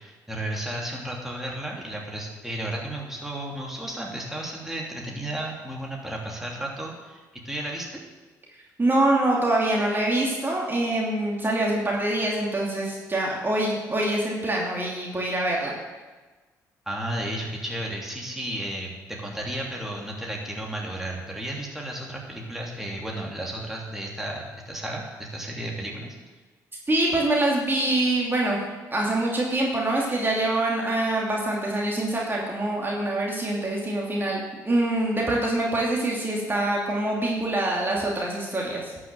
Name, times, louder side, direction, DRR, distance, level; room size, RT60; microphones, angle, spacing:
voice 1, 0.0-8.0 16.9-26.1, right 1 dB, 5° right, -2 dB, 3.0 m, -33 dB
voice 2, 8.8-15.7 26.9-28.6 28.9-38.9, right 1 dB, 25° right, -3 dB, 2.7 m, -25 dB
12.0 x 6.2 x 7.6 m, 1.3 s
hypercardioid pair, 50°, 9 cm